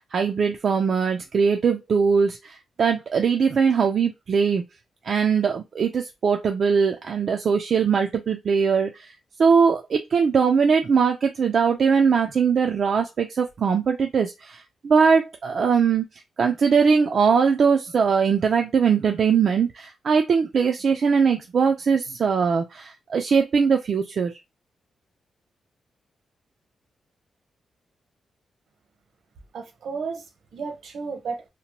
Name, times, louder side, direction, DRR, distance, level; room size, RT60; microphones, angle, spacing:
voice 1, 0.0-4.6 5.0-16.1 16.4-24.3, right 6 dB, 50° right, 0.3 m, -21 dB
voice 2, 29.5-31.5, right 5 dB, 70° right, 0.8 m, -33 dB
2.8 x 2.1 x 2.9 m
wide cardioid pair, 140°, 0 cm